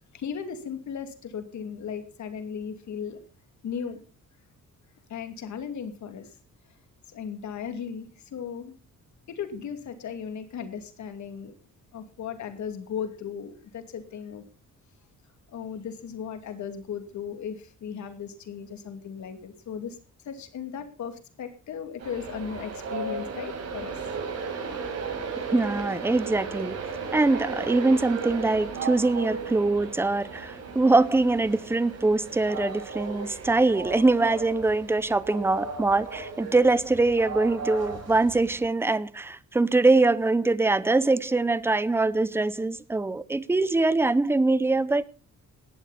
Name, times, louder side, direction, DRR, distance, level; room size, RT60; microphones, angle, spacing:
voice 1, 0.1-3.2 3.6-4.0 5.1-6.4 7.1-8.7 9.3-11.5 11.9-14.4 15.5-20.0 20.2-24.1, left 7 dB, 65° left, 2.6 m, -36 dB
Train, 22.0-38.6, right 4 dB, 50° right, 6.0 m, -36 dB
voice 2, 25.5-26.8 27.1-45.0, right 3 dB, 10° right, 0.6 m, -23 dB
17.5 x 12.0 x 4.1 m
wide cardioid pair, 170°, 31 cm